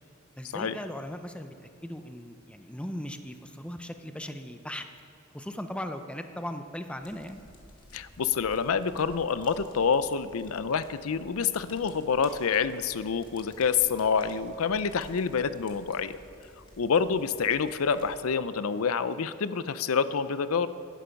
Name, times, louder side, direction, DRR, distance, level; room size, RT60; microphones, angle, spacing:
voice 1, 0.4-4.8 5.3-7.4, left 1 dB, 5° left, 7 dB, 0.6 m, -38 dB
sound 1, 7.0-18.2, left 1 dB, 20° left, 1.9 m, -53 dB
voice 2, 7.9-16.2 16.8-20.7, left 6 dB, 80° left, 13 dB, 0.5 m, -27 dB
16.0 x 11.5 x 5.2 m, 2.6 s
head